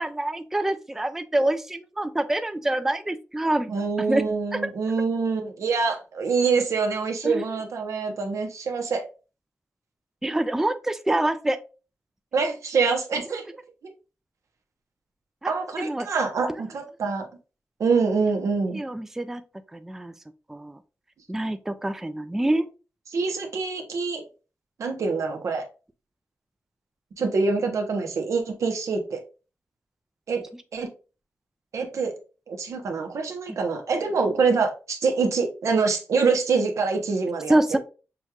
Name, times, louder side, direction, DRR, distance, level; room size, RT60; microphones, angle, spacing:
voice 1, 0.0-3.7 4.1-4.2 4.5-4.6 7.2-7.4 10.2-11.6 15.4-15.5 15.8-16.1 18.7-19.4 19.7-20.1 20.5-20.8 21.3-22.7 37.5-37.8, right 1 dB, 5° right, 0.3 m, -26 dB
voice 2, 3.7-9.0 12.3-13.4 15.5-17.3 17.8-18.8 23.1-24.2 24.8-25.7 27.2-29.2 30.3-30.4 30.7-30.9 31.7-32.1 32.5-37.8, right 4 dB, 85° right, 0.9 m, -25 dB
6.3 x 2.4 x 2.9 m
wide cardioid pair, 135°, 5 cm